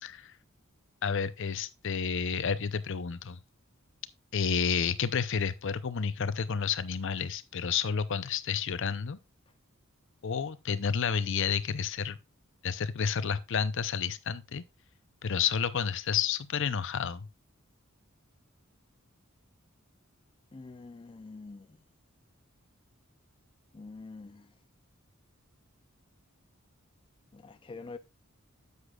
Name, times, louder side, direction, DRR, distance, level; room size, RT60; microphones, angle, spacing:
voice 1, 0.0-0.3 1.0-3.4 4.3-9.2 10.2-12.2 12.6-14.6 15.2-17.3, left 6 dB, 65° left, 0.6 m, -30 dB
voice 2, 20.5-21.7 23.7-24.4 27.3-28.0, left 3 dB, 25° left, 0.4 m, -45 dB
10.0 x 8.1 x 2.4 m
head